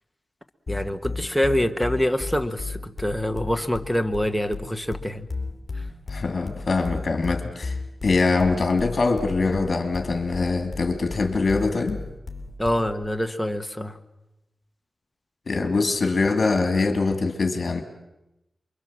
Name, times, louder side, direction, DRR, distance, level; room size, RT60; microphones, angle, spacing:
sound 1, 0.7-13.0, left 3 dB, 35° left, 3.2 m, -34 dB
voice 1, 0.7-5.3 5.7-5.8 12.6-14.0, equal, ahead, 1.4 m, -25 dB
voice 2, 6.1-7.7 8.0-12.0 15.5-17.8, left 3 dB, 55° left, 2.7 m, -23 dB
28.0 x 23.5 x 7.6 m
wide cardioid pair, 105°, 0 cm